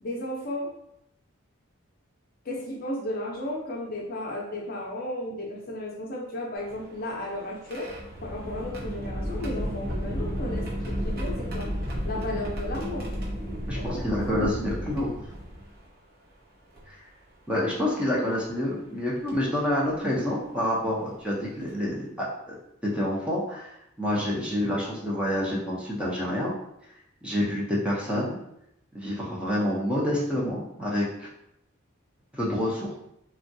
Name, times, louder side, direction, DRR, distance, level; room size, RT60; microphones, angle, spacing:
voice 1, 0.0-0.7 2.4-7.9 8.2-11.7 12.0-13.1 13.8-14.5, left 1 dB, 45° left, -1 dB, 0.5 m, -34 dB
sound 1, 6.6-15.9 16.7-16.8 18.3-18.5 19.3-19.5 21.1-21.2 21.6-21.8, equal, 45° right, 0.7 m, -33 dB
voice 2, 13.7-15.1 16.9-17.0 17.5-22.5 22.8-26.5 27.2-28.4 28.9-31.3 32.3-32.9, left 1 dB, 5° right, -6 dB, 0.5 m, -28 dB
3.4 x 2.2 x 2.6 m, 0.79 s
head